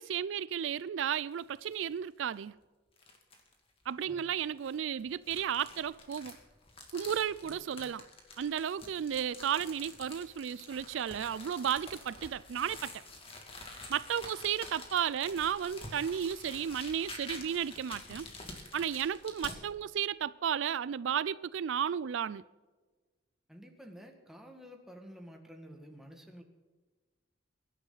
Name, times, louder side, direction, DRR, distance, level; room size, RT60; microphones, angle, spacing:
voice 1, 0.0-2.6 3.9-6.3 6.9-8.0 8.4-13.0 13.9-18.3 18.7-22.4, right 8 dB, 80° right, 0.4 m, -33 dB
sound 1, 1.3-1.8 2.3-2.4 3.0-3.5 4.4-19.6, left 2 dB, 30° left, 2.5 m, -48 dB
voice 2, 7.4-7.9 23.5-26.4, equal, ahead, 2.0 m, -51 dB
22.5 x 11.0 x 4.1 m
head